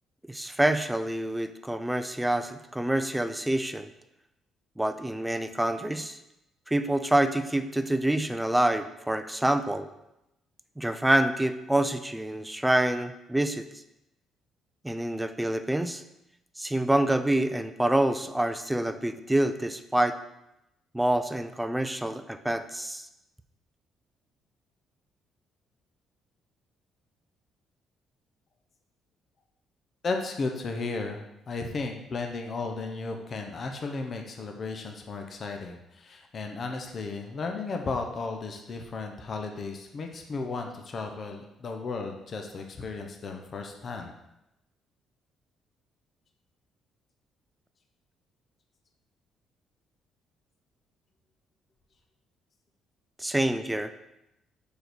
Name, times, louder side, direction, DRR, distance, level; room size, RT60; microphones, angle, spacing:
voice 1, 0.3-3.9 4.8-6.2 6.7-9.9 10.8-13.7 14.8-16.0 16.6-20.2 20.9-23.1 53.2-53.9, right 1 dB, 5° right, 10 dB, 0.4 m, -27 dB
voice 2, 30.0-44.1, left 3 dB, 35° left, 3 dB, 0.8 m, -34 dB
5.1 x 4.7 x 6.1 m, 0.88 s
cardioid pair, 145°, 0 cm